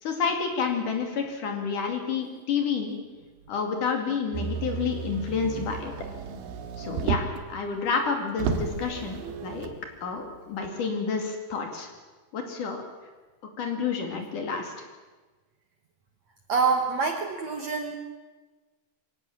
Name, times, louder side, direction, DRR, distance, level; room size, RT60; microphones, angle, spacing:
voice 1, 0.0-3.0 3.5-5.9 6.8-7.2 7.5-9.7 10.0-11.9 12.3-12.8 13.6-14.7, left 5 dB, 55° left, 3 dB, 3.9 m, -29 dB
Motor vehicle (road), 4.3-7.5 8.0-8.1 8.4-9.8 10.6-10.7, right 6 dB, 80° right, 3.2 m, -32 dB
voice 2, 16.5-18.0, right 5 dB, 60° right, 4 dB, 2.0 m, -26 dB
22.5 x 17.5 x 7.4 m, 1.3 s
omnidirectional pair, 4.5 m